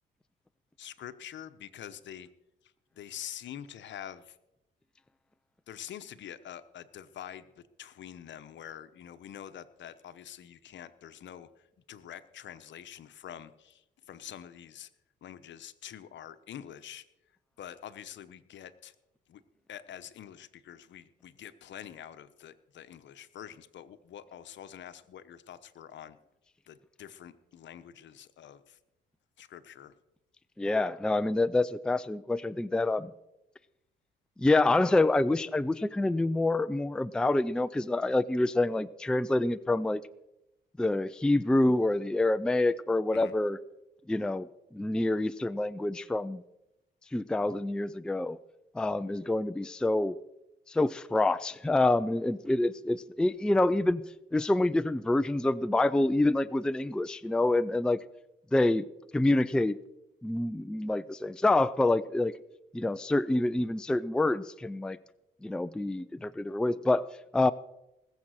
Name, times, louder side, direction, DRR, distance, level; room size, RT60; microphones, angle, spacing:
voice 1, 0.8-2.3 2.9-4.4 5.7-14.9 15.2-17.0 17.6-18.9 19.3-19.4 19.7-26.2 26.7-28.8 29.4-29.9 43.1-43.3, left 10 dB, 65° left, 12 dB, 1.0 m, -46 dB
voice 2, 30.6-33.1 34.4-40.0 40.8-43.6 44.1-44.5 44.7-46.4 47.1-48.4 48.7-50.2 50.7-54.0 54.3-58.0 58.5-58.8 59.1-59.8 60.2-62.3 62.7-65.0 65.4-67.1 67.3-67.5, left 2 dB, 5° left, 13 dB, 0.4 m, -27 dB
19.5 x 7.3 x 6.5 m, 0.91 s
cardioid pair, 90°, 20 cm